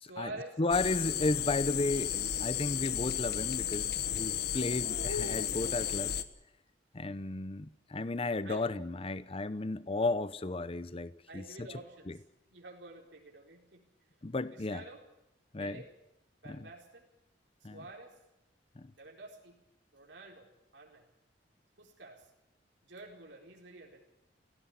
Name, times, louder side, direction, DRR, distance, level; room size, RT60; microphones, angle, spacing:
voice 1, 0.0-0.6 8.4-8.7 11.3-13.9 14.5-15.0 15.6-15.9 16.4-17.1 17.6-18.2 19.0-19.6 19.9-21.1 21.8-22.3 22.8-24.0, right 2 dB, 80° right, 4.3 m, -49 dB
voice 2, 0.6-6.2 6.9-11.7 12.1-12.2 14.2-14.8 15.5-15.8 16.5-16.7 17.6-17.8 18.8-18.9, left 2 dB, 30° left, 0.7 m, -34 dB
sound 1, 0.7-6.2, left 10 dB, 60° left, 1.2 m, -33 dB
17.5 x 17.0 x 9.6 m
head